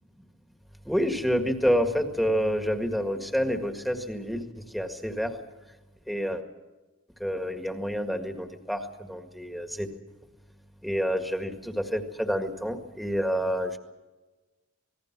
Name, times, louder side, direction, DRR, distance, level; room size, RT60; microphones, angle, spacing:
voice 1, 0.9-4.5 4.7-5.3 6.1-6.4 7.2-8.8 9.1-9.9 10.8-13.8, equal, ahead, 5 dB, 1.8 m, -28 dB
27.0 x 19.5 x 6.0 m, 1.2 s
head